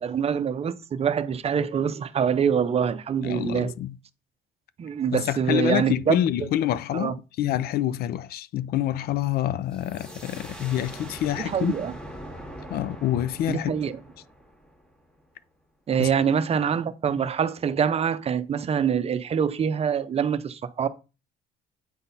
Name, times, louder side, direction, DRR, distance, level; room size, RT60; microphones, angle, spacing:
voice 1, 0.0-3.7 4.8-6.5 6.9-7.1 11.4-11.9 13.5-13.9 15.9-20.9, right 7 dB, 35° right, 0.6 m, -25 dB
voice 2, 3.2-4.0 5.1-11.8 12.7-13.7 16.0-16.1, left 12 dB, 65° left, 0.5 m, -27 dB
sound 1, 9.7-15.2, right 1 dB, 5° left, 1.7 m, -42 dB
8.9 x 4.0 x 4.0 m
cardioid pair, 110°, 17 cm